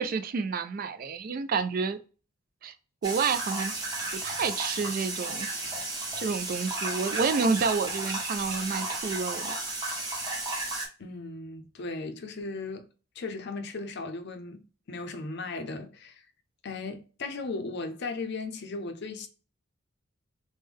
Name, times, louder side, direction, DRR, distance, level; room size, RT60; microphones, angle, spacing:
voice 1, 0.0-2.0 2.6-2.7 3.0-3.7 4.1-5.5 6.2-9.6, right 5 dB, 45° right, 0.3 m, -29 dB
sound 1, 3.0-10.9, right 2 dB, 20° right, 0.8 m, -33 dB
voice 2, 11.0-12.9 13.2-16.2 16.6-19.3, left 3 dB, 55° left, 0.5 m, -37 dB
3.2 x 2.1 x 3.4 m
head